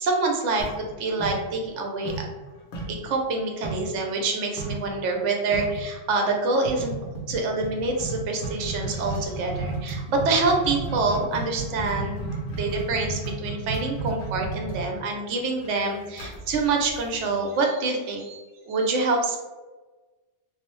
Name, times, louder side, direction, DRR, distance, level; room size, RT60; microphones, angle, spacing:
voice 1, 0.0-2.3 2.9-6.9 7.3-12.2 12.5-19.4, right 3 dB, 85° right, 2 dB, 0.9 m, -26 dB
sound 1, 0.6-1.8 2.1-4.0 4.6-4.9 5.2-5.3 5.5-5.9 6.7-17.5, right 3 dB, 75° left, 0.9 m, -33 dB
2.5 x 2.0 x 2.9 m, 1.2 s
omnidirectional pair, 1.2 m